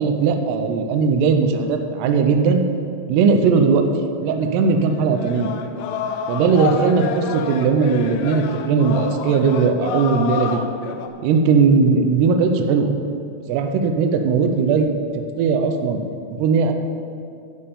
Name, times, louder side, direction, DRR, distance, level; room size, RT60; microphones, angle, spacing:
voice 1, 0.0-2.6 3.1-3.9 4.2-5.5 6.3-10.6 11.2-12.9 13.5-14.9 15.4-16.0 16.4-16.7, right 5 dB, 90° right, 6 dB, 2.3 m, -18 dB
sound 1, 4.4-4.5 4.8-11.1, left 7 dB, 80° left, 2.9 m, -28 dB
14.0 x 5.6 x 6.8 m, 2.4 s
omnidirectional pair, 5.7 m